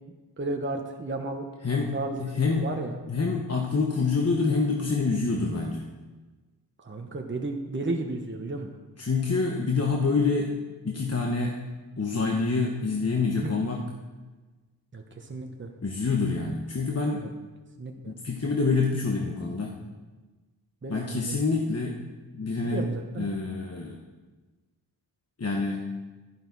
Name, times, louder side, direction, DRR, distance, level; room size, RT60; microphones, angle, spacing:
voice 1, 0.4-1.4 1.9-2.9 6.8-8.8 13.4-13.5 14.9-15.7 17.2-17.3 17.8-18.1 20.8-21.2 22.6-23.3, right 2 dB, 30° right, 3 dB, 1.1 m, -33 dB
voice 2, 1.6-2.7 3.1-5.9 9.0-10.5 10.8-11.6 12.0-13.9 15.8-17.3 18.1-19.8 20.9-22.0 22.3-22.9 23.1-24.0 25.4-25.9, left 4 dB, 35° left, 0 dB, 1.1 m, -27 dB
11.5 x 11.0 x 4.1 m, 1.3 s
wide cardioid pair, 55°, 42 cm